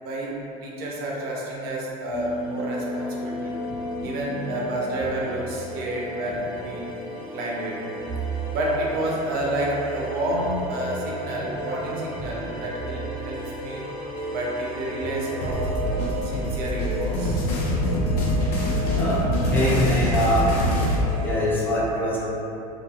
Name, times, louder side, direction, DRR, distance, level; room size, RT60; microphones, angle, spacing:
voice 1, 0.0-3.6 4.0-6.9 7.3-7.8 8.5-13.9 14.3-15.8 16.2-17.4, right 1 dB, 55° right, -3 dB, 0.6 m, -29 dB
sound 1, 2.1-21.5, right 1 dB, 25° right, 0.7 m, -33 dB
sound 2, 15.4-21.0, equal, 80° left, 0.6 m, -24 dB
voice 2, 18.8-20.6 21.2-22.2, left 1 dB, 10° left, -7 dB, 0.8 m, -24 dB
2.4 x 2.3 x 2.8 m, 2.8 s
hypercardioid pair, 90°, 20 cm